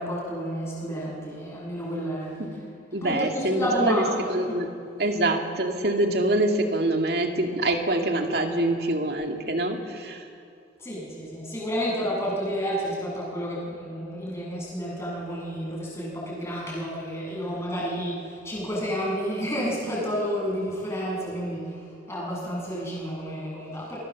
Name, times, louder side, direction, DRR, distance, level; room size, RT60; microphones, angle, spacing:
voice 1, 0.0-2.4 3.0-4.6 10.8-24.0, equal, 15° left, -5 dB, 7.3 m, -30 dB
voice 2, 2.9-4.7 5.0-10.2, right 1 dB, 60° right, 4 dB, 2.4 m, -25 dB
28.5 x 22.5 x 7.5 m, 2.4 s
head